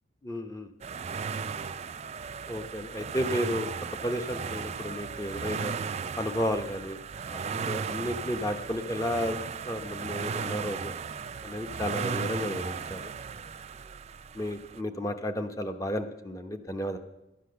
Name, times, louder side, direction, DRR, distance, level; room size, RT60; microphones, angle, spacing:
voice 1, 0.2-0.7 2.5-3.7 4.0-5.7 6.2-7.0 7.3-9.4 9.6-10.9 11.4-13.1 14.3-17.0, equal, 20° left, 7 dB, 0.9 m, -32 dB
sound 1, 0.8-14.8, right 5 dB, 35° right, 0.4 m, -36 dB
12.0 x 9.8 x 6.8 m, 0.95 s
head